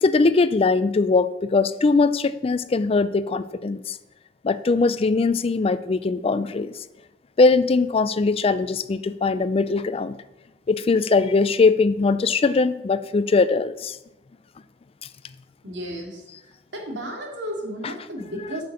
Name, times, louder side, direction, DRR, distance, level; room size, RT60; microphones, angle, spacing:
voice 1, 0.0-4.0 4.4-6.7 7.4-10.2 10.7-14.0, left 3 dB, 30° left, 14 dB, 0.4 m, -21 dB
voice 2, 15.6-16.2 16.7-18.6, equal, 80° right, 1 dB, 2.6 m, -33 dB
9.5 x 6.1 x 6.9 m, 0.97 s
head